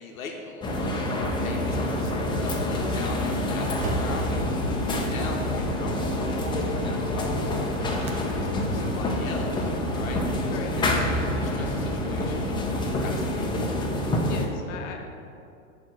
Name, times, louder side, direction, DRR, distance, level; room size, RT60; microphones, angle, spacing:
voice 1, 0.0-8.0 8.3-13.6, left 3 dB, 90° left, 1 dB, 0.9 m, -40 dB
sound 1, 0.6-14.5, left 1 dB, 10° left, 0.6 m, -27 dB
sound 2, 2.8-8.3, right 2 dB, 55° right, 0.9 m, -40 dB
voice 2, 10.5-11.3 14.3-15.2, left 5 dB, 65° left, 3 dB, 0.8 m, -39 dB
7.4 x 3.0 x 6.0 m, 2.5 s
hypercardioid pair, 115°, 40 cm